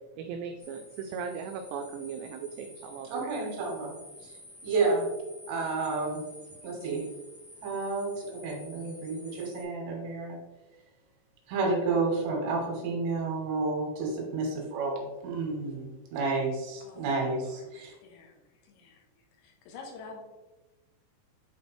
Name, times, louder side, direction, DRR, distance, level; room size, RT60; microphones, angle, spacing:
voice 1, 0.2-3.3, right 6 dB, 90° right, 5 dB, 2.4 m, -38 dB
sound 1, 0.6-9.6, left 1 dB, 40° left, 1.7 m, -51 dB
voice 2, 3.1-3.9 4.6-5.1 5.5-6.2 6.6-7.0 7.6-10.4 11.5-17.9, right 3 dB, 70° right, -1 dB, 3.6 m, -30 dB
voice 3, 16.8-18.4 18.6-19.0 19.4-20.2, left 4 dB, 85° left, 2 dB, 3.4 m, -48 dB
9.4 x 4.2 x 3.4 m, 1.1 s
omnidirectional pair, 5.4 m